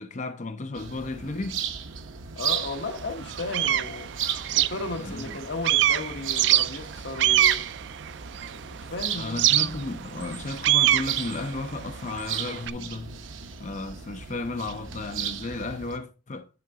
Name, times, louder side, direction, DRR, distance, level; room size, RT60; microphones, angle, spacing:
voice 1, 0.0-1.6 5.0-5.4 9.1-13.2 13.6-16.5, left 2 dB, 40° left, 0.6 m, -34 dB
sound 1, 0.7-16.0, right 8 dB, 85° right, 0.7 m, -36 dB
voice 2, 2.4-4.1 4.5-7.6 8.5-9.4, left 2 dB, 65° left, 1.3 m, -35 dB
sound 2, 2.4-2.5 3.1-5.4 5.6-8.8 9.4-12.7, right 13 dB, 60° right, 0.3 m, -24 dB
9.4 x 3.9 x 3.7 m
head